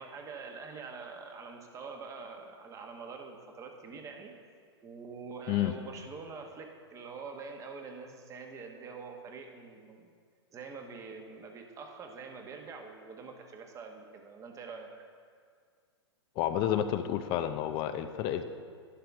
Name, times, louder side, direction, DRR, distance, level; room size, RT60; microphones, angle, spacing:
voice 1, 0.0-4.3 4.8-10.1 10.5-14.9, right 4 dB, 20° right, 3 dB, 1.1 m, -45 dB
voice 2, 16.4-18.4, left 11 dB, 35° left, 9 dB, 0.5 m, -30 dB
11.5 x 10.5 x 3.6 m, 2.1 s
hypercardioid pair, 125°, 15 cm